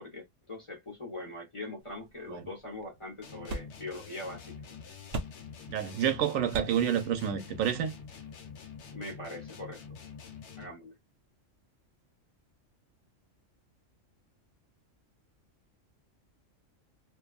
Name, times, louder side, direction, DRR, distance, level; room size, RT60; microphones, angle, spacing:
voice 1, 0.0-4.6 8.9-9.8 10.6-10.9, left 2 dB, 25° left, 0.9 m, -42 dB
sound 1, 1.8-8.9, right 2 dB, 60° right, 0.8 m, -45 dB
sound 2, 3.2-10.9, left 6 dB, 65° left, 0.9 m, -47 dB
voice 2, 5.7-7.9, right 9 dB, 85° right, 1.0 m, -29 dB
2.6 x 2.3 x 2.3 m
omnidirectional pair, 1.3 m